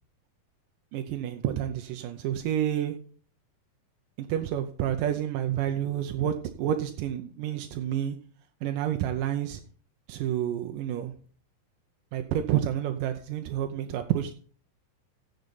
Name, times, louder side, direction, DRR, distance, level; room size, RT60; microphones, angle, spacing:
voice 1, 0.9-3.0 4.2-8.2 8.6-9.6 10.1-11.1 12.1-14.3, right 10 dB, 80° right, 6 dB, 2.0 m, -29 dB
16.0 x 6.5 x 4.0 m, 0.42 s
omnidirectional pair, 4.6 m